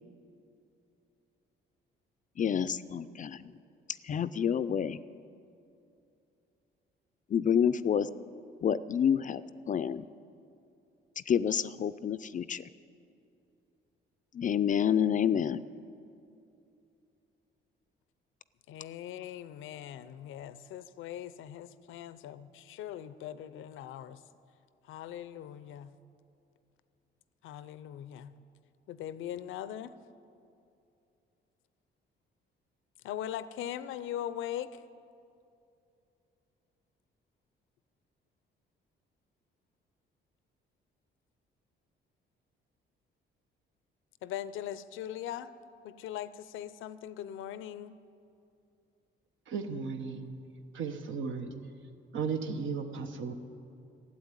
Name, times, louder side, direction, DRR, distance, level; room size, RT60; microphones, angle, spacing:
voice 1, 2.4-3.5 4.0-5.0 7.3-8.1 8.6-10.0 11.2-12.6 14.3-15.6, left 8 dB, 40° left, 14 dB, 0.4 m, -28 dB
voice 2, 18.7-24.2 24.8-26.0 27.4-28.4 28.9-29.9 33.0-34.8 44.2-45.5 45.8-47.9, left 11 dB, 85° left, 15 dB, 0.6 m, -40 dB
voice 3, 49.5-50.4 50.7-51.5 52.1-53.3, right 5 dB, 75° right, 7 dB, 1.1 m, -35 dB
12.5 x 7.9 x 9.7 m, 2.6 s
cardioid pair, 90°, 20 cm